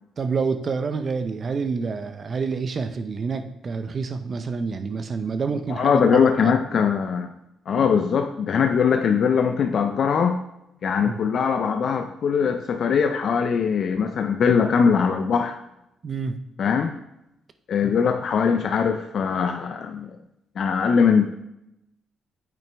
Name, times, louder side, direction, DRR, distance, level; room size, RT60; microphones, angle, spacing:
voice 1, 0.2-6.5 7.7-7.8 11.0-11.2 16.0-16.4 17.8-18.0, right 5 dB, 40° right, 9 dB, 0.5 m, -28 dB
voice 2, 5.7-7.3 7.7-10.4 10.8-15.6 16.6-16.9 17.7-20.1 20.6-21.3, left 6 dB, 55° left, 6 dB, 0.5 m, -21 dB
8.5 x 6.1 x 3.4 m, 0.85 s
cardioid pair, 100°, 0 cm